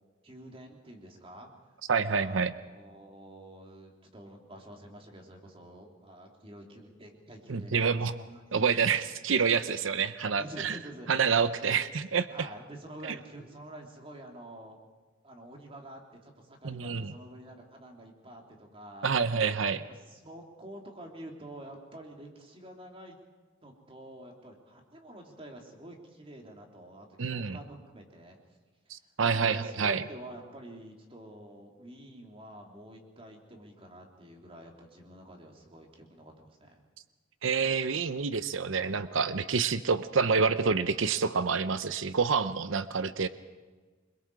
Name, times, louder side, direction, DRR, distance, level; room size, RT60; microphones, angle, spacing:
voice 1, 0.2-1.5 2.0-8.4 10.4-11.2 11.6-11.8 12.3-14.8 15.2-19.1 19.8-23.2 23.6-28.4 28.8-36.8, right 1 dB, 30° right, 1 dB, 3.1 m, -48 dB
voice 2, 1.9-2.5 7.5-8.1 8.5-10.8 11.1-12.3 16.6-17.1 19.0-19.8 27.2-27.6 28.9-30.0 37.4-43.3, right 5 dB, 80° right, 13 dB, 0.8 m, -27 dB
28.5 x 21.5 x 4.8 m, 1.4 s
head